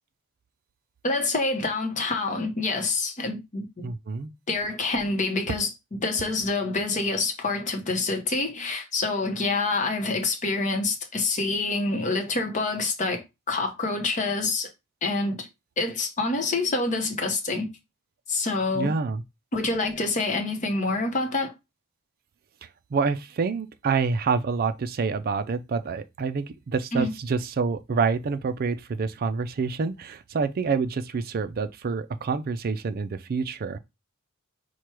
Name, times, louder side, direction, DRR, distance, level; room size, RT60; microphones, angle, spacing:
voice 1, 1.0-3.9 4.5-5.7 6.0-14.7 15.0-15.5 15.8-17.7 18.3-18.9 19.5-21.5 26.9-27.1, left 3 dB, 35° left, 0.8 m, -27 dB
voice 2, 3.8-4.3 18.7-19.2 22.9-33.8, right 5 dB, 45° right, 0.4 m, -27 dB
4.5 x 2.2 x 4.6 m
head